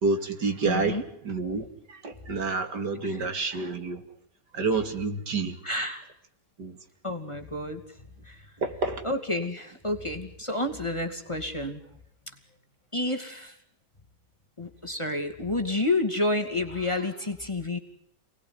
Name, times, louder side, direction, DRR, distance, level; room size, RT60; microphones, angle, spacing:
voice 1, 0.0-4.0 4.5-5.6 6.6-6.8 8.6-9.0, right 4 dB, 70° right, 3.1 m, -29 dB
voice 2, 0.6-1.0 3.0-3.3 5.6-6.0 7.0-7.8 8.2-8.4 9.0-11.8 12.9-13.6 14.6-17.8, left 2 dB, 15° left, 2.5 m, -30 dB
28.5 x 20.0 x 9.8 m
omnidirectional pair, 1.9 m